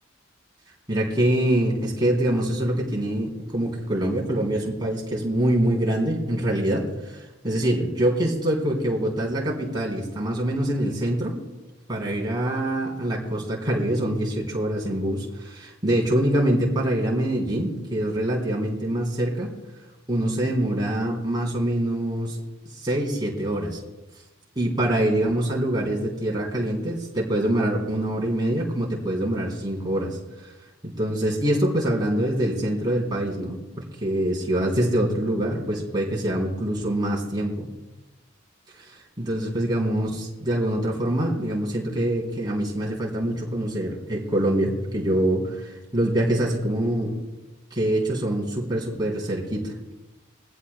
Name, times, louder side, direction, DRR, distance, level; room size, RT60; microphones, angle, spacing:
voice 1, 0.9-7.2 7.4-11.4 11.9-19.5 20.1-22.4 22.8-23.8 24.5-30.2 30.8-37.7 39.2-47.1 47.7-49.9, right 1 dB, 20° right, -3 dB, 3.3 m, -25 dB
22.0 x 15.5 x 2.2 m, 1.1 s
head